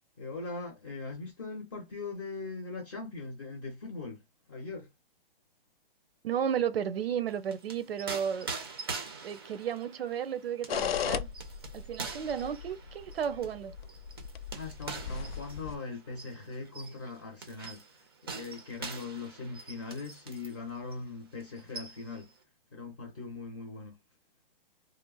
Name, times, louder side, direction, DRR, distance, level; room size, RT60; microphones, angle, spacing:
voice 1, 0.2-4.2 4.5-4.9 14.5-22.3 22.7-24.0, left 3 dB, 25° left, 0.7 m, -40 dB
voice 2, 6.2-8.5 9.2-11.3 11.7-13.7, right 8 dB, 90° right, 0.6 m, -33 dB
sound 1, 7.3-20.6 20.9-21.1 21.4-22.2, right 4 dB, 25° right, 0.4 m, -44 dB
sound 2, 10.7-15.8, left 8 dB, 90° left, 0.5 m, -37 dB
3.2 x 2.0 x 2.3 m
hypercardioid pair, 170°, 29 cm